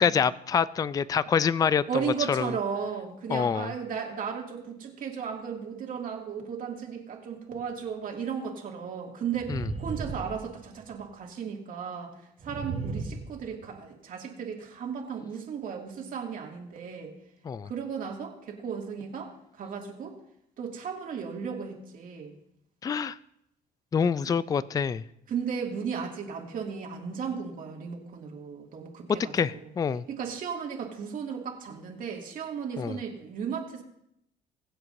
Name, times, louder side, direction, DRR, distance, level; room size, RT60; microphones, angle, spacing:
voice 1, 0.0-1.8 2.3-2.5 3.3-3.7 9.5-9.7 17.4-17.7 22.8-23.2 23.9-25.0 29.3-30.0 32.8-33.0, left 7 dB, 20° left, 17 dB, 0.3 m, -26 dB
voice 2, 1.9-12.1 12.4-17.1 17.6-20.1 20.6-22.3 25.3-29.7 30.1-33.8, right 6 dB, 55° right, 0 dB, 2.3 m, -35 dB
sound 1, 7.5-7.6 9.3-11.0 12.4-13.8, right 4 dB, 40° right, 1.9 m, -36 dB
22.0 x 7.8 x 2.7 m, 0.75 s
cardioid pair, 110°, 17 cm